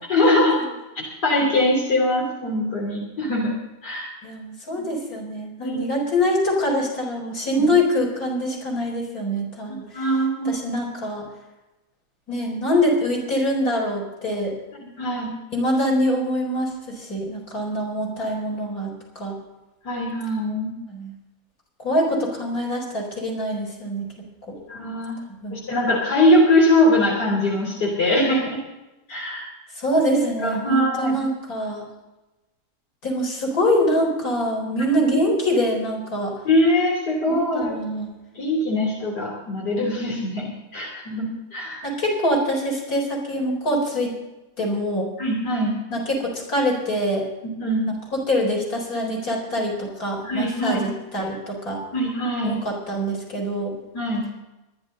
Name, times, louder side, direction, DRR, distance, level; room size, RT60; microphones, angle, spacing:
voice 1, 0.1-0.6 1.0-3.5 3.8-4.1 4.7-4.8 5.6-5.8 9.9-10.6 14.8-15.3 19.8-20.7 24.7-25.2 25.5-28.6 29.1-29.5 30.4-31.1 36.5-37.7 38.4-41.8 45.2-45.7 47.6-47.9 50.2-50.8 51.9-52.6 53.9-54.2, left 1 dB, 85° left, -3 dB, 3.8 m, -22 dB
voice 2, 4.2-10.1 10.4-11.3 12.3-14.5 15.5-19.4 20.9-21.1 21.8-24.1 24.5-24.6 25.4-25.6 29.8-31.8 33.0-36.3 37.3-38.1 41.8-44.1 44.6-45.1 45.9-47.3 47.9-51.8 52.4-53.7, equal, 65° left, -1 dB, 4.9 m, -24 dB
24.0 x 11.0 x 3.9 m, 1.0 s
omnidirectional pair, 1.7 m